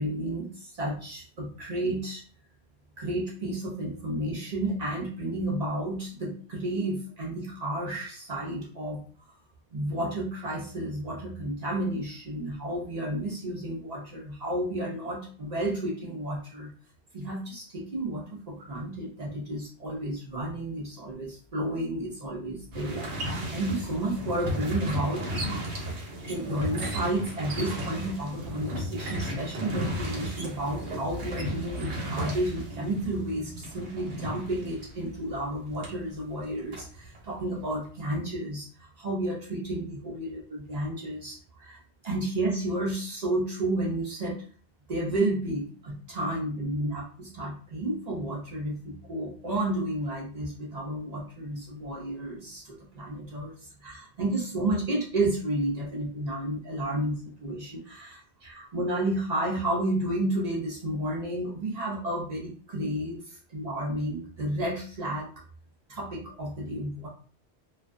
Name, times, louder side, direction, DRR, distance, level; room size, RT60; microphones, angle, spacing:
voice 1, 0.0-2.2 3.0-9.0 9.7-16.7 17.1-25.7 26.3-44.4 44.9-65.3 65.9-67.1, right 1 dB, 45° right, -3 dB, 0.6 m, -31 dB
sound 1, 22.7-36.0 36.3-37.6, equal, 90° right, 1.0 m, -34 dB
2.4 x 2.2 x 2.4 m, 0.42 s
omnidirectional pair, 1.1 m